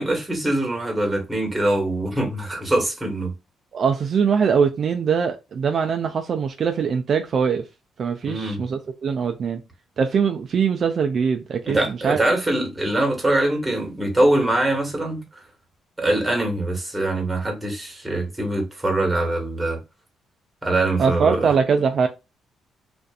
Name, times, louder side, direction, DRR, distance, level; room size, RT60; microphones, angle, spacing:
voice 1, 0.0-3.3 8.2-8.6 11.6-15.2 16.0-19.8 20.6-21.5, right 1 dB, 10° right, 1.3 m, -23 dB
voice 2, 3.7-7.6 8.0-9.6 10.0-12.2 21.0-22.1, right 6 dB, 55° right, 0.3 m, -22 dB
2.5 x 2.4 x 2.3 m
cardioid pair, 90°, 0 cm